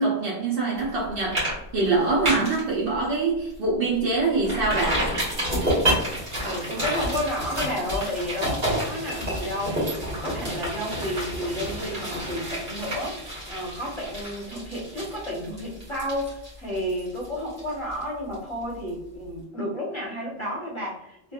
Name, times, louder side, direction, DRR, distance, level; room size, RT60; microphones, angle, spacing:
voice 1, 0.0-1.4 1.7-5.1, right 3 dB, 65° right, -3 dB, 0.8 m, -24 dB
sound 1, 0.8-1.0 1.3-1.5 1.8-2.6 3.0-3.1 3.5-3.6 4.4-18.0 18.3-18.4, right 1 dB, 50° right, 1.5 m, -29 dB
voice 2, 6.4-21.3, equal, 30° left, -5 dB, 0.8 m, -31 dB
3.1 x 2.4 x 2.3 m, 0.83 s
omnidirectional pair, 1.1 m